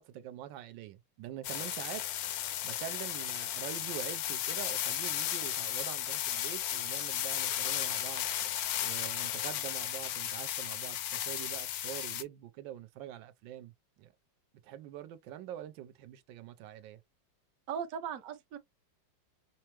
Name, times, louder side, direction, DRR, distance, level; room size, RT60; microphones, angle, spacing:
voice 1, 0.0-2.0 2.6-8.3 8.8-13.7 14.0-14.1 14.6-17.0, right 12 dB, 85° right, 1.3 m, -44 dB
sound 1, 1.4-12.2, left 11 dB, 70° left, 0.9 m, -35 dB
voice 2, 17.7-18.6, right 8 dB, 60° right, 0.9 m, -38 dB
5.5 x 2.0 x 2.9 m
omnidirectional pair, 2.0 m